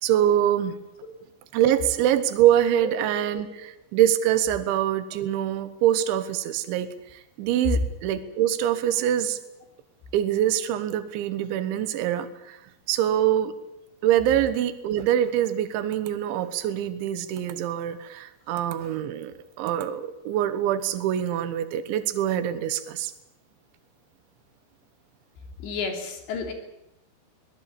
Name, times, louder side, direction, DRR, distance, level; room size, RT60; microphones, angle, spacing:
voice 1, 0.0-0.8 1.5-3.5 3.9-6.9 7.4-9.4 10.1-12.6 12.9-13.5 14.0-23.1, right 11 dB, 85° right, 11 dB, 3.6 m, -24 dB
voice 2, 2.8-3.2 3.5-3.6 25.6-26.5, left 4 dB, 70° left, 4 dB, 5.4 m, -32 dB
22.5 x 19.0 x 8.6 m, 0.86 s
omnidirectional pair, 5.2 m